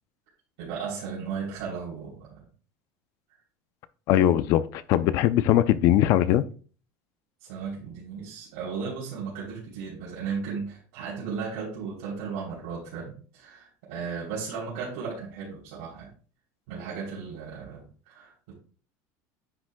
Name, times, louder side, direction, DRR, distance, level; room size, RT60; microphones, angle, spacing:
voice 1, 0.6-2.4 7.4-16.1 16.7-18.5, right 5 dB, 85° right, 3.4 m, -35 dB
voice 2, 4.1-6.4, left 12 dB, 45° left, 0.5 m, -21 dB
9.7 x 6.1 x 2.3 m
cardioid pair, 175°, 8 cm